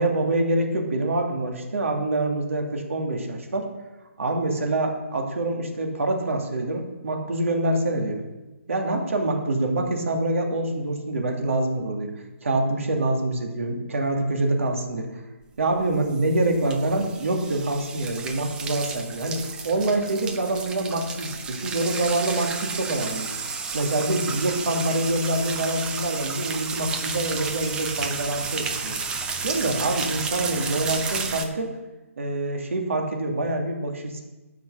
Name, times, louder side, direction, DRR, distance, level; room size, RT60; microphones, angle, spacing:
voice 1, 0.0-3.7 4.2-8.2 8.7-12.1 12.4-15.1 15.6-23.3 23.7-29.0 29.4-31.7 32.2-34.2, right 2 dB, 65° right, 3 dB, 2.4 m, -25 dB
sound 1, 15.8-31.4, right 5 dB, 10° right, 0.7 m, -32 dB
11.5 x 5.7 x 6.9 m, 1.1 s
figure-of-eight pair, 145°, 8 cm